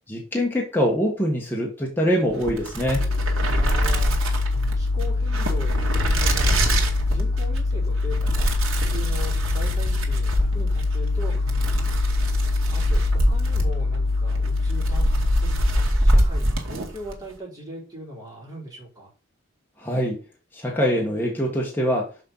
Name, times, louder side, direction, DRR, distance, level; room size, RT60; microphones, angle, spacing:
voice 1, 0.1-3.1 19.8-20.2 20.5-22.1, equal, 10° left, -1 dB, 1.5 m, -24 dB
sound 1, 2.3-17.2, right 1 dB, 70° right, 2.2 m, -25 dB
sound 2, 2.9-15.9, left 3 dB, 45° left, 0.9 m, -24 dB
voice 2, 3.4-19.1, equal, 15° right, -5 dB, 4.4 m, -40 dB
6.7 x 5.7 x 5.5 m, 0.33 s
head